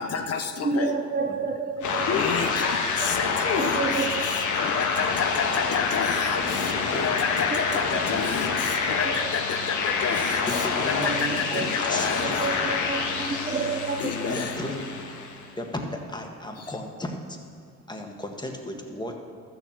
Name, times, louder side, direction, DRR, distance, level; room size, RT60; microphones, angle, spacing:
voice 1, 0.0-0.9 2.1-12.4 14.0-14.5, left 6 dB, 55° left, 6 dB, 0.9 m, -30 dB
voice 2, 0.6-2.6 3.0-3.1 3.5-4.4 6.9-7.1 7.5-8.2 8.7-9.4 9.7-9.8 11.0-14.5, right 4 dB, 30° right, 6 dB, 0.8 m, -31 dB
sound 1, 1.8-15.5, left 5 dB, 80° left, 1.4 m, -27 dB
voice 3, 2.1-2.8 3.3-3.4 3.9-4.0 7.4-7.5 10.0-10.1 10.5-12.5 14.3-14.9 15.6-17.4 17.9-19.2, left 1 dB, 15° left, 2 dB, 1.6 m, -34 dB
13.0 x 7.1 x 7.4 m, 2.3 s
cardioid pair, 90°, 30 cm